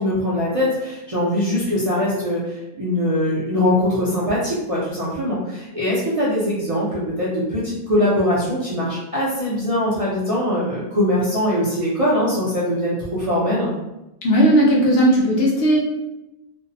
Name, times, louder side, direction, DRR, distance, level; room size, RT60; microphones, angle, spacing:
voice 1, 0.0-13.7, left 1 dB, 45° right, -8 dB, 0.4 m, -22 dB
voice 2, 14.2-15.8, right 1 dB, 65° left, -3 dB, 0.9 m, -16 dB
2.6 x 2.0 x 2.6 m, 0.95 s
omnidirectional pair, 1.2 m